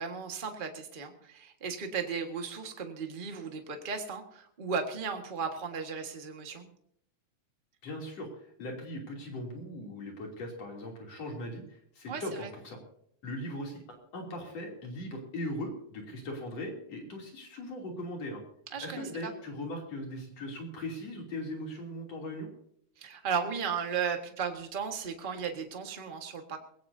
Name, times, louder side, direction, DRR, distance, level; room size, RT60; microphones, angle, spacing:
voice 1, 0.0-6.7 12.1-12.5 18.7-19.3 23.0-26.6, right 6 dB, 25° right, 4 dB, 1.1 m, -35 dB
voice 2, 7.8-8.3 8.6-12.8 13.2-18.4 18.8-22.5, left 1 dB, 60° left, 0 dB, 4.1 m, -39 dB
21.0 x 17.0 x 2.8 m, 0.69 s
omnidirectional pair, 3.4 m